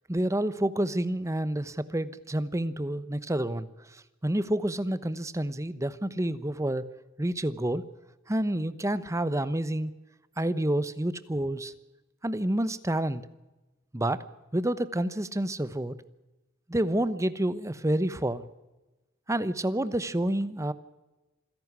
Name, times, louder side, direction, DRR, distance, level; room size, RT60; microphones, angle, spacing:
voice 1, 0.1-3.7 4.2-6.9 7.2-7.8 8.3-9.9 10.4-11.7 12.2-13.2 13.9-14.2 14.5-15.9 16.7-18.4 19.3-20.7, right 1 dB, 15° right, 15 dB, 0.9 m, -28 dB
27.0 x 11.0 x 9.6 m, 1.1 s
head